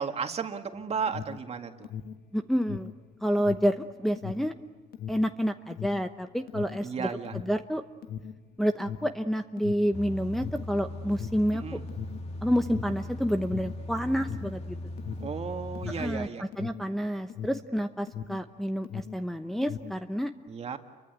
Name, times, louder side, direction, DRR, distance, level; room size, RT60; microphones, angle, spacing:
voice 1, 0.0-1.7 6.8-7.3 11.5-11.8 15.2-16.4 20.5-20.8, right 6 dB, 40° right, 5 dB, 2.1 m, -34 dB
Alarm, 0.7-18.5 18.8-20.1, left 8 dB, 65° left, 1.6 m, -40 dB
voice 2, 2.3-2.9 3.2-4.5 5.1-7.8 8.6-11.8 12.4-14.8 15.9-20.3, equal, ahead, 5 dB, 0.9 m, -29 dB
sound 1, 9.9-16.3, left 1 dB, 40° left, 2.3 m, -39 dB
29.5 x 23.5 x 8.3 m, 1.2 s
cardioid pair, 110°, 17 cm